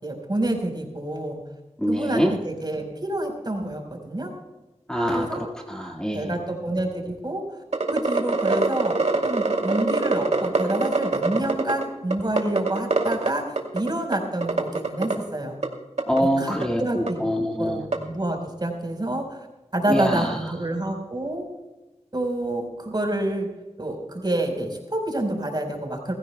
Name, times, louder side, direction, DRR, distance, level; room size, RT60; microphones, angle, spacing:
voice 1, 0.0-1.4 1.9-4.3 5.1-5.5 6.1-7.4 7.9-9.0 9.2-15.5 16.4-17.2 17.6-19.4 19.7-21.4 22.1-23.5 23.8-26.1, right 1 dB, 35° right, 3 dB, 4.3 m, -28 dB
voice 2, 1.8-2.3 4.9-6.3 16.1-17.8 19.9-20.3, equal, 5° left, -1 dB, 1.9 m, -24 dB
sound 1, 7.7-11.8 12.1-13.3 13.6-14.2 14.4-15.1 15.6-15.7 16.0-16.2 16.6-16.7 17.1-17.2 17.9-18.0, right 3 dB, 70° right, 2.5 m, -23 dB
22.0 x 15.0 x 2.2 m, 1.1 s
wide cardioid pair, 55°, 12 cm